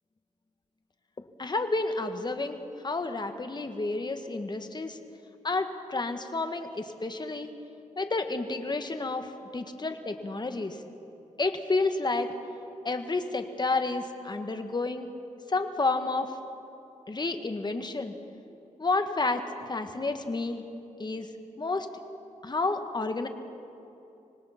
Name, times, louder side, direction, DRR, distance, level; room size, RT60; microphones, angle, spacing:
voice 1, 1.2-5.0 5.4-7.5 8.0-10.8 11.4-12.3 12.8-15.1 15.5-16.3 17.1-18.1 18.8-19.4 19.7-20.6 21.0-21.3 21.6-21.9 22.4-23.3, left 3 dB, 35° left, 7 dB, 1.6 m, -30 dB
25.5 x 19.0 x 5.9 m, 2.8 s
cardioid pair, 75°, 13 cm